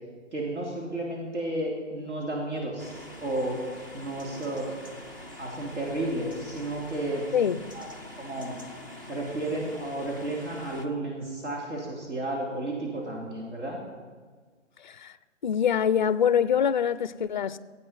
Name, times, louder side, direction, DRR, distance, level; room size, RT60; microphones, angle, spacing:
voice 1, 0.3-3.6 3.9-4.7 5.4-7.3 7.7-7.9 8.1-8.6 9.1-13.8, right 1 dB, 65° right, 3.1 m, -32 dB
sound 1, 2.8-10.9, left 1 dB, 15° right, 0.5 m, -45 dB
voice 2, 14.8-15.1 15.4-17.6, left 8 dB, 40° left, 0.4 m, -24 dB
15.0 x 8.7 x 5.6 m
hypercardioid pair, 150°, 37 cm